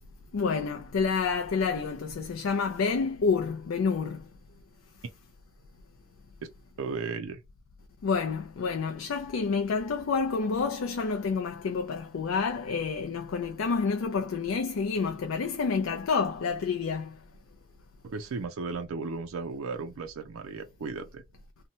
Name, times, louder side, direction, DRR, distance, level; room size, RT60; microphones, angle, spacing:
voice 1, 0.3-4.3 8.0-17.2, left 5 dB, 75° left, 0.4 m, -29 dB
voice 2, 6.8-7.4 18.0-21.2, right 4 dB, 85° right, 0.4 m, -35 dB
2.8 x 2.1 x 2.7 m
head